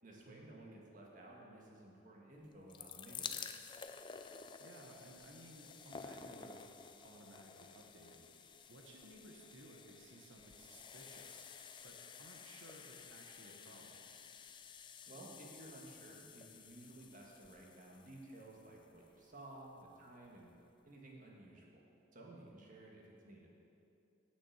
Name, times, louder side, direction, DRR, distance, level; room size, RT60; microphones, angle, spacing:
voice 1, 0.0-3.4 15.1-20.5 20.8-23.5, right 1 dB, 40° right, -2 dB, 1.7 m, -55 dB
sound 1, 2.4-19.5 20.2-20.3 20.5-20.6, left 6 dB, 25° left, 0.4 m, -52 dB
voice 2, 4.6-6.7 7.0-8.3 8.7-11.4 11.8-14.1, right 1 dB, 70° right, 1 dB, 1.3 m, -58 dB
8.6 x 6.9 x 7.3 m, 2.7 s
head